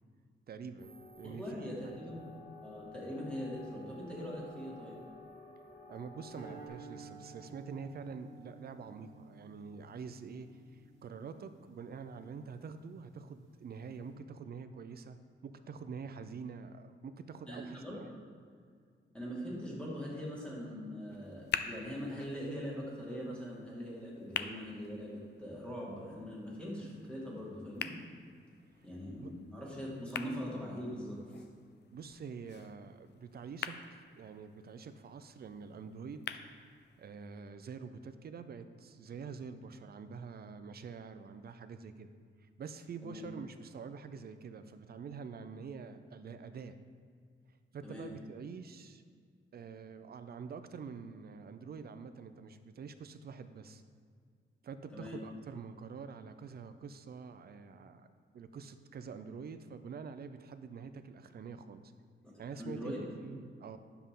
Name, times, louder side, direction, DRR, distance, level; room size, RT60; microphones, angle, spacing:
voice 1, 0.5-1.7 5.9-15.2 15.4-18.1 29.2-29.3 31.9-36.3 37.0-42.1 42.6-46.8 47.7-49.0 49.5-53.8 54.6-58.1 58.3-61.9 62.4-63.8, right 5 dB, 50° right, 10 dB, 0.5 m, -46 dB
sound 1, 0.8-6.7, left 1 dB, 30° left, 2.4 m, -52 dB
voice 2, 1.2-2.2 2.6-5.0 17.5-18.0 19.1-27.9 28.8-31.2 43.0-43.2 47.8-48.1 54.9-55.2 62.6-63.1, equal, 5° left, -5 dB, 2.1 m, -42 dB
sound 2, 6.4-12.7, right 3 dB, 15° right, 1.8 m, -54 dB
sound 3, 21.1-37.1, left 8 dB, 55° left, 0.4 m, -46 dB
10.0 x 6.9 x 3.8 m, 2.1 s
wide cardioid pair, 155°, 21 cm